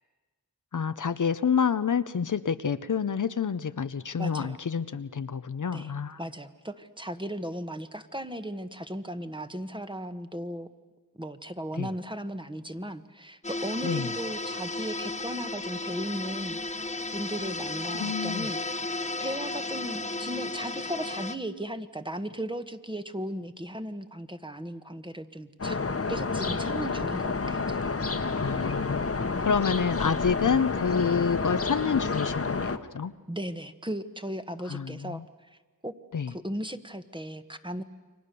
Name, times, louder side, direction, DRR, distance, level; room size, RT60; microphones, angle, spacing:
voice 1, 0.7-6.2 11.8-11.9 13.8-14.1 17.9-18.5 28.4-33.1 34.7-35.2 36.1-36.3, left 6 dB, 55° left, 11 dB, 0.9 m, -28 dB
voice 2, 4.2-4.6 5.7-5.9 6.2-10.7 11.2-16.6 17.1-18.6 18.9-25.8 26.1-27.9 29.7-29.8 33.3-35.2 35.5-35.9 36.3-37.8, equal, 15° right, 9 dB, 1.4 m, -36 dB
sound 1, 13.4-21.4, left 2 dB, 20° left, 0.9 m, -34 dB
sound 2, 25.6-32.8, left 4 dB, 40° left, 1.4 m, -29 dB
29.5 x 24.0 x 6.9 m, 1.3 s
cardioid pair, 55°, 36 cm